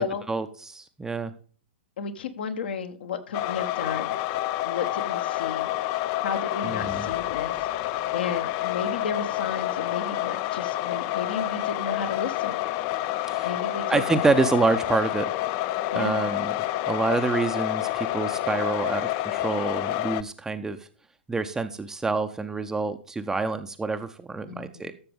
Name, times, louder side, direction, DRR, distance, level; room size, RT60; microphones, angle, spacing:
voice 1, 0.0-1.3 6.6-7.1 13.3-13.5 13.9-15.3 15.9-16.6 16.9-20.8 21.3-24.9, right 3 dB, 10° right, 8 dB, 0.6 m, -27 dB
voice 2, 2.0-4.2 4.6-5.7 6.2-7.5 8.1-12.7 13.4-14.2 15.9-16.3 24.5-24.9, left 6 dB, 60° left, 8 dB, 1.1 m, -33 dB
sound 1, 3.3-20.2, left 15 dB, 35° left, 0.4 m, -28 dB
12.5 x 6.8 x 3.5 m, 0.41 s
figure-of-eight pair, 105°, 6 cm